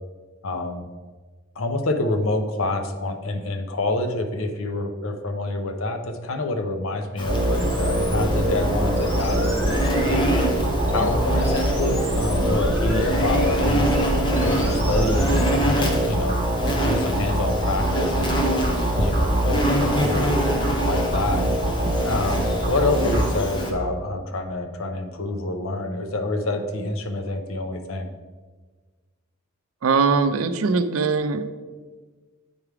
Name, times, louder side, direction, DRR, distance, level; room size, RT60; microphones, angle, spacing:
voice 1, 0.4-0.9 1.6-9.6 10.0-10.5 10.9-13.9 14.4-20.3 20.8-21.5 22.0-28.1, left 2 dB, 75° left, 6 dB, 0.7 m, -27 dB
Insect, 7.2-23.7, equal, 20° left, 0.8 m, -27 dB
sound 1, 7.3-23.9, right 1 dB, 30° right, 1.3 m, -24 dB
sound 2, 7.6-15.6, equal, 10° right, 1.4 m, -30 dB
voice 2, 29.8-31.5, right 4 dB, 85° right, 10 dB, 0.5 m, -21 dB
8.7 x 3.4 x 4.7 m, 1.4 s
head